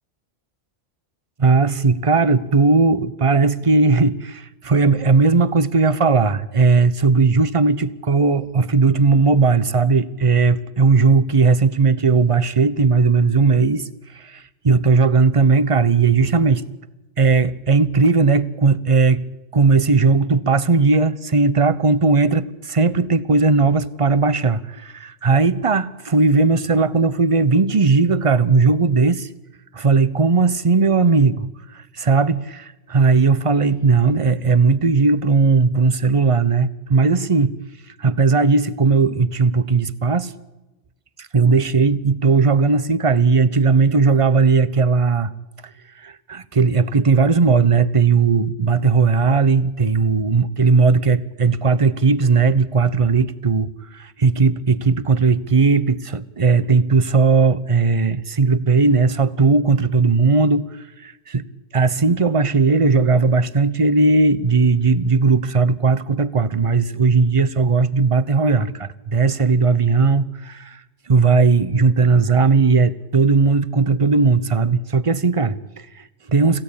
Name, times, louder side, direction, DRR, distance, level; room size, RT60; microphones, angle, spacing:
voice 1, 1.4-13.9 14.1-16.6 17.2-19.2 19.5-29.3 29.7-37.6 38.0-40.3 41.2-45.3 46.0-61.4 61.7-70.8 71.1-76.6, right 4 dB, 30° right, 0.9 m, -17 dB
26.5 x 16.0 x 8.5 m
omnidirectional pair, 1.2 m